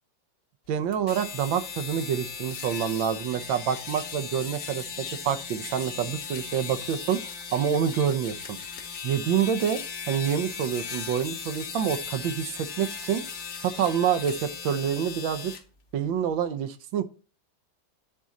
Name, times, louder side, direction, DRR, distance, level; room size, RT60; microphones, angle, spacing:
voice 1, 0.7-8.6 9.0-9.8 10.1-13.2 13.6-15.5 15.9-17.0, right 8 dB, 85° right, 11 dB, 1.5 m, -27 dB
sound 1, 0.9-15.6, left 6 dB, 50° left, 1.2 m, -37 dB
10.5 x 3.8 x 4.0 m, 0.35 s
omnidirectional pair, 2.1 m